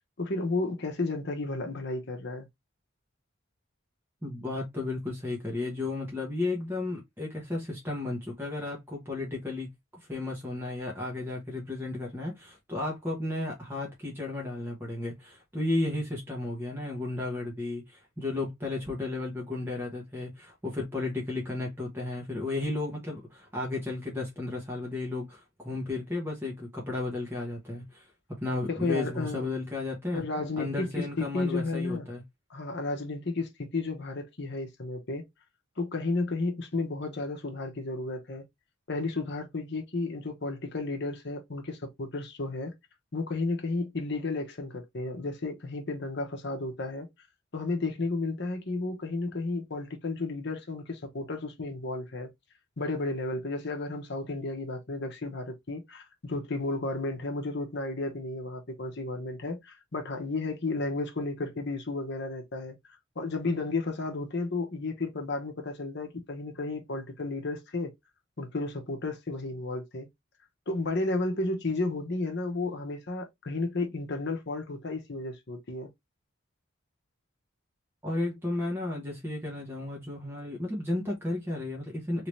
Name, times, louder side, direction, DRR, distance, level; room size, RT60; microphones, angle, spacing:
voice 1, 0.2-2.5 28.7-29.5 30.1-32.1 32.5-35.2 35.8-38.4 38.9-42.7 43.1-47.1 47.5-52.3 52.8-62.8 63.2-67.9 68.4-70.1 70.7-75.9, left 3 dB, 55° left, 0.9 m, -33 dB
voice 2, 4.2-9.7 10.1-28.1 28.4-30.2 30.6-32.2 78.0-82.3, left 2 dB, 10° right, 1.0 m, -33 dB
3.3 x 2.8 x 3.1 m
head